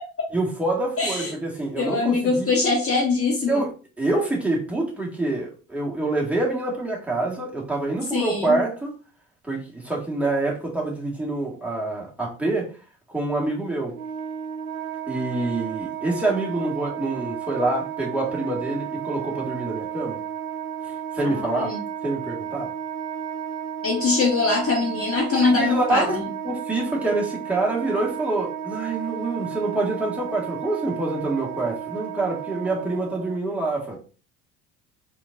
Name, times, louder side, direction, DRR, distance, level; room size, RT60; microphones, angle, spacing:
voice 1, 0.3-2.5 3.5-3.7 4.0-9.0 9.4-12.7 13.1-14.0 15.1-20.2 21.1-21.7 22.0-22.7 25.3-26.2 26.4-34.0, right 2 dB, 5° right, 1.9 m, -26 dB
voice 2, 1.0-1.3 1.8-3.6 8.1-8.6 21.2-21.8 23.8-26.3, left 3 dB, 30° left, 1.5 m, -23 dB
Wind instrument woodwind instrument, 13.9-33.4, right 8 dB, 85° right, 0.7 m, -33 dB
4.3 x 3.8 x 2.7 m
figure-of-eight pair, 65°, 43 cm